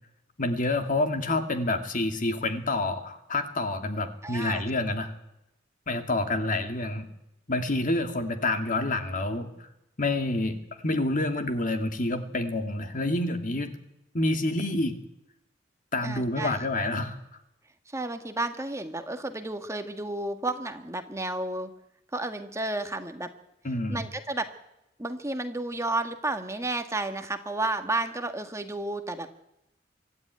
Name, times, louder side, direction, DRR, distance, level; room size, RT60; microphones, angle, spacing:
voice 1, 0.4-5.1 5.9-7.1 7.5-9.7 10.0-10.6 10.8-13.7 14.1-15.0 15.9-17.2 23.6-24.1, left 2 dB, 45° left, 6 dB, 2.2 m, -28 dB
voice 2, 4.2-4.6 16.0-16.6 17.9-21.7 22.1-23.3 23.9-24.5 25.0-29.4, right 2 dB, 15° right, 7 dB, 1.5 m, -32 dB
25.0 x 13.0 x 9.5 m, 0.85 s
head